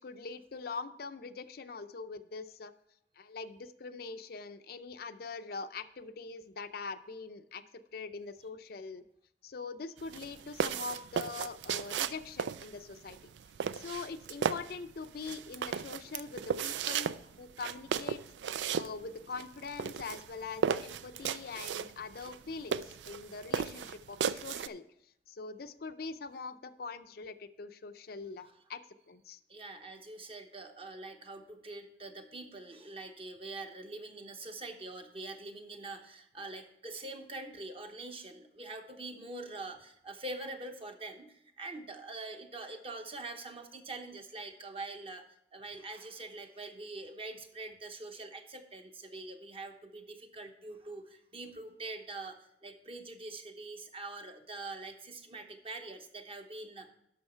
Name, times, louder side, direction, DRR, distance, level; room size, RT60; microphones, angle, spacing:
voice 1, 0.0-2.7 3.2-7.6 7.9-9.0 9.4-13.2 13.7-18.2 18.7-24.8 25.3-29.4, left 4 dB, 60° left, 9 dB, 0.5 m, -43 dB
sound 1, 10.0-24.7, right 7 dB, 90° right, 0.4 m, -35 dB
voice 2, 29.5-45.2 45.5-56.9, right 2 dB, 35° right, 5 dB, 1.0 m, -44 dB
11.0 x 6.4 x 4.4 m, 0.76 s
head